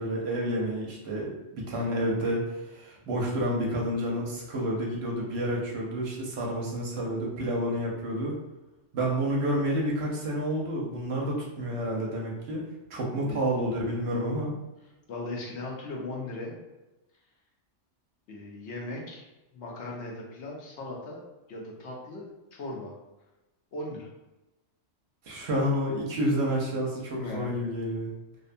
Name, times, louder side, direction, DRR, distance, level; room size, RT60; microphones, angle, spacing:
voice 1, 0.0-2.4 2.7-8.4 8.9-12.6 12.9-14.5 25.2-28.1, equal, 65° right, -2 dB, 0.8 m, -29 dB
voice 2, 15.1-16.5 18.3-19.3 19.5-21.2 21.5-22.9 23.7-24.1 27.1-27.5, left 2 dB, 65° left, -2 dB, 0.9 m, -38 dB
2.6 x 2.1 x 2.5 m, 1.0 s
omnidirectional pair, 1.3 m